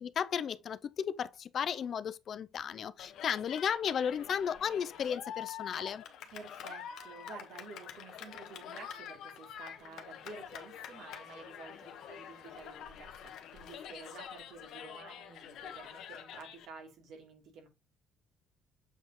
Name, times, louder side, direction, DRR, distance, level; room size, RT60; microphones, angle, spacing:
voice 1, 0.0-6.0, left 8 dB, 40° left, 0.5 m, -34 dB
Cheering, 3.0-16.6, left 9 dB, 65° left, 1.4 m, -46 dB
voice 2, 6.3-17.7, right 4 dB, 60° right, 3.2 m, -51 dB
7.9 x 4.6 x 3.1 m
cardioid pair, 175°, 0 cm